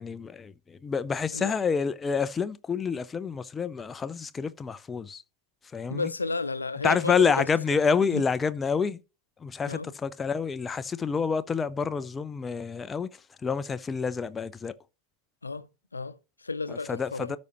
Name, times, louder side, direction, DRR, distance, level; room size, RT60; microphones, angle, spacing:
voice 1, 0.0-5.2 5.7-6.1 6.8-9.0 9.4-14.7 16.7-17.4, left 5 dB, 15° left, 0.5 m, -28 dB
voice 2, 5.9-7.5 8.1-8.2 9.7-9.9 15.4-17.3, left 3 dB, 80° left, 0.7 m, -33 dB
13.0 x 5.2 x 3.0 m
figure-of-eight pair, 90°, 0 cm